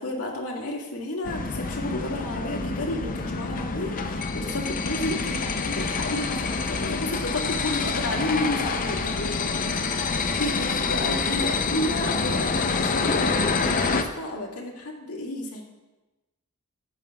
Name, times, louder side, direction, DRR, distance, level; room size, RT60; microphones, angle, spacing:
voice 1, 0.0-9.5 10.4-15.6, left 1 dB, 80° left, -1 dB, 1.9 m, -31 dB
sound 1, 1.2-14.0, left 4 dB, 35° left, 0.6 m, -27 dB
13.5 x 9.1 x 2.3 m, 1.1 s
head